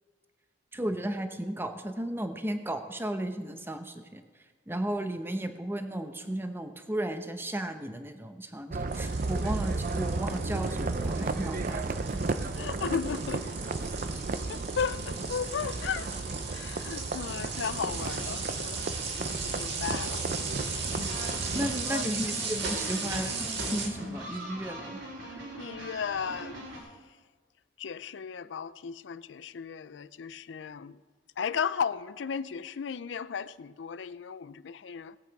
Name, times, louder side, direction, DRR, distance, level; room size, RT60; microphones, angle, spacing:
voice 1, 0.7-4.2 4.7-12.2 21.5-25.0, right 1 dB, 10° right, 0.8 m, -34 dB
sound 1, 8.7-21.8, right 3 dB, 45° right, 0.6 m, -34 dB
sound 2, 8.9-23.9, right 4 dB, 60° right, 2.2 m, -37 dB
voice 2, 12.6-13.4 14.5-16.1 16.5-19.2 19.5-20.7 21.9-22.0 25.2-26.7 27.8-31.0 31.4-35.2, left 6 dB, 70° left, 0.4 m, -35 dB
sound 3, 20.8-26.8, equal, 80° right, 4.2 m, -41 dB
18.5 x 8.3 x 4.7 m
head